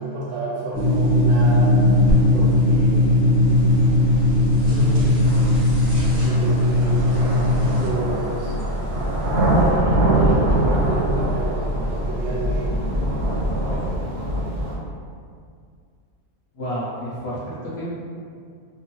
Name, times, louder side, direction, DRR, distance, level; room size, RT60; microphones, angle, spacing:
voice 1, 0.0-1.8 2.3-3.2 4.6-5.5 6.2-8.5 9.5-12.8 13.7-14.0, right 1 dB, 85° right, -8 dB, 1.3 m, -30 dB
sound 1, 0.7-7.9, left 1 dB, 25° right, 1.2 m, -18 dB
sound 2, 1.7-13.9, equal, 10° left, 0.7 m, -30 dB
sound 3, 4.2-4.3 5.2-14.7, right 1 dB, 60° right, 0.8 m, -24 dB
voice 2, 16.5-17.9, equal, 60° left, -8 dB, 0.7 m, -30 dB
2.9 x 2.0 x 2.9 m, 2.2 s
omnidirectional pair, 1.5 m